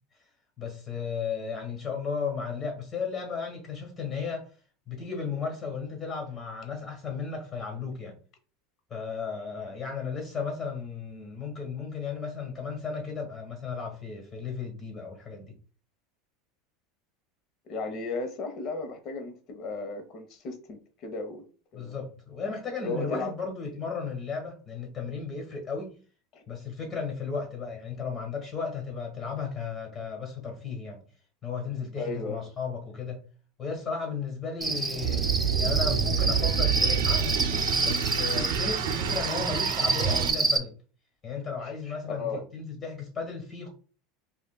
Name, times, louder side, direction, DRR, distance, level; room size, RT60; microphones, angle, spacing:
voice 1, 0.6-4.5 4.9-8.2 8.9-15.5 21.7-26.0 26.5-31.0 31.4-33.2 33.6-35.3 35.6-40.7 41.2-43.7, left 5 dB, 25° left, 1.5 m, -35 dB
voice 2, 17.7-21.4 21.7-22.0 22.8-23.3 26.3-26.4 32.0-32.4 42.1-42.4, left 3 dB, 45° left, 0.9 m, -35 dB
Cricket, 34.6-40.6, right 3 dB, 15° right, 0.5 m, -28 dB
sound 1, 35.0-40.3, right 7 dB, 85° right, 0.4 m, -28 dB
5.3 x 2.4 x 2.3 m
supercardioid pair, 140°, 0 cm